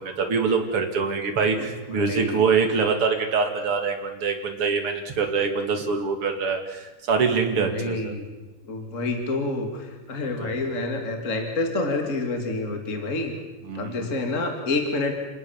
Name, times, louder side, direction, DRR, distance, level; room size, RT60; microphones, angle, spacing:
voice 1, 0.0-8.1 10.4-10.5 13.7-14.0, right 5 dB, 40° right, 4 dB, 2.3 m, -24 dB
voice 2, 1.9-2.4 7.7-8.3 8.7-13.3 13.7-15.1, left 2 dB, 30° left, 4 dB, 1.5 m, -28 dB
28.0 x 19.5 x 7.3 m, 1.2 s
omnidirectional pair, 5.5 m